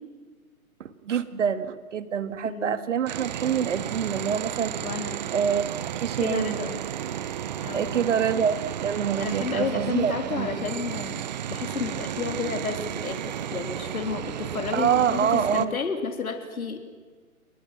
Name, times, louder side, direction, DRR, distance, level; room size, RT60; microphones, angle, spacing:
voice 1, 0.8-4.8 5.3-5.6 6.0-6.6 7.7-10.7 14.7-15.7, right 8 dB, 55° right, 12 dB, 2.0 m, -26 dB
voice 2, 2.4-2.8 4.8-5.2 6.2-6.8 7.6-8.1 9.2-11.2 11.5-16.8, left 5 dB, 75° left, 5 dB, 3.6 m, -31 dB
sound 1, 3.1-15.7, right 10 dB, 30° right, 0.8 m, -33 dB
29.5 x 21.5 x 6.1 m, 1.4 s
hypercardioid pair, 145°, 44 cm